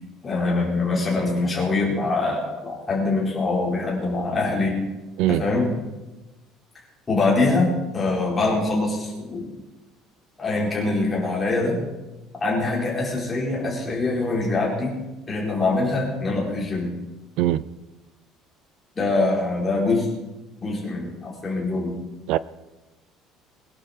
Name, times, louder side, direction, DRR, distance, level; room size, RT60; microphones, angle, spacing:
voice 1, 0.2-4.8 5.3-5.7 7.1-9.5 10.4-11.8 12.4-14.9 15.3-16.9 18.9-20.1 20.6-22.0, left 3 dB, 15° left, -4 dB, 4.5 m, -24 dB
voice 2, 5.2-5.4 17.4-17.6 22.3-22.4, right 14 dB, 60° right, 18 dB, 0.4 m, -21 dB
22.0 x 11.5 x 4.4 m, 1.1 s
cardioid pair, 180°, 0 cm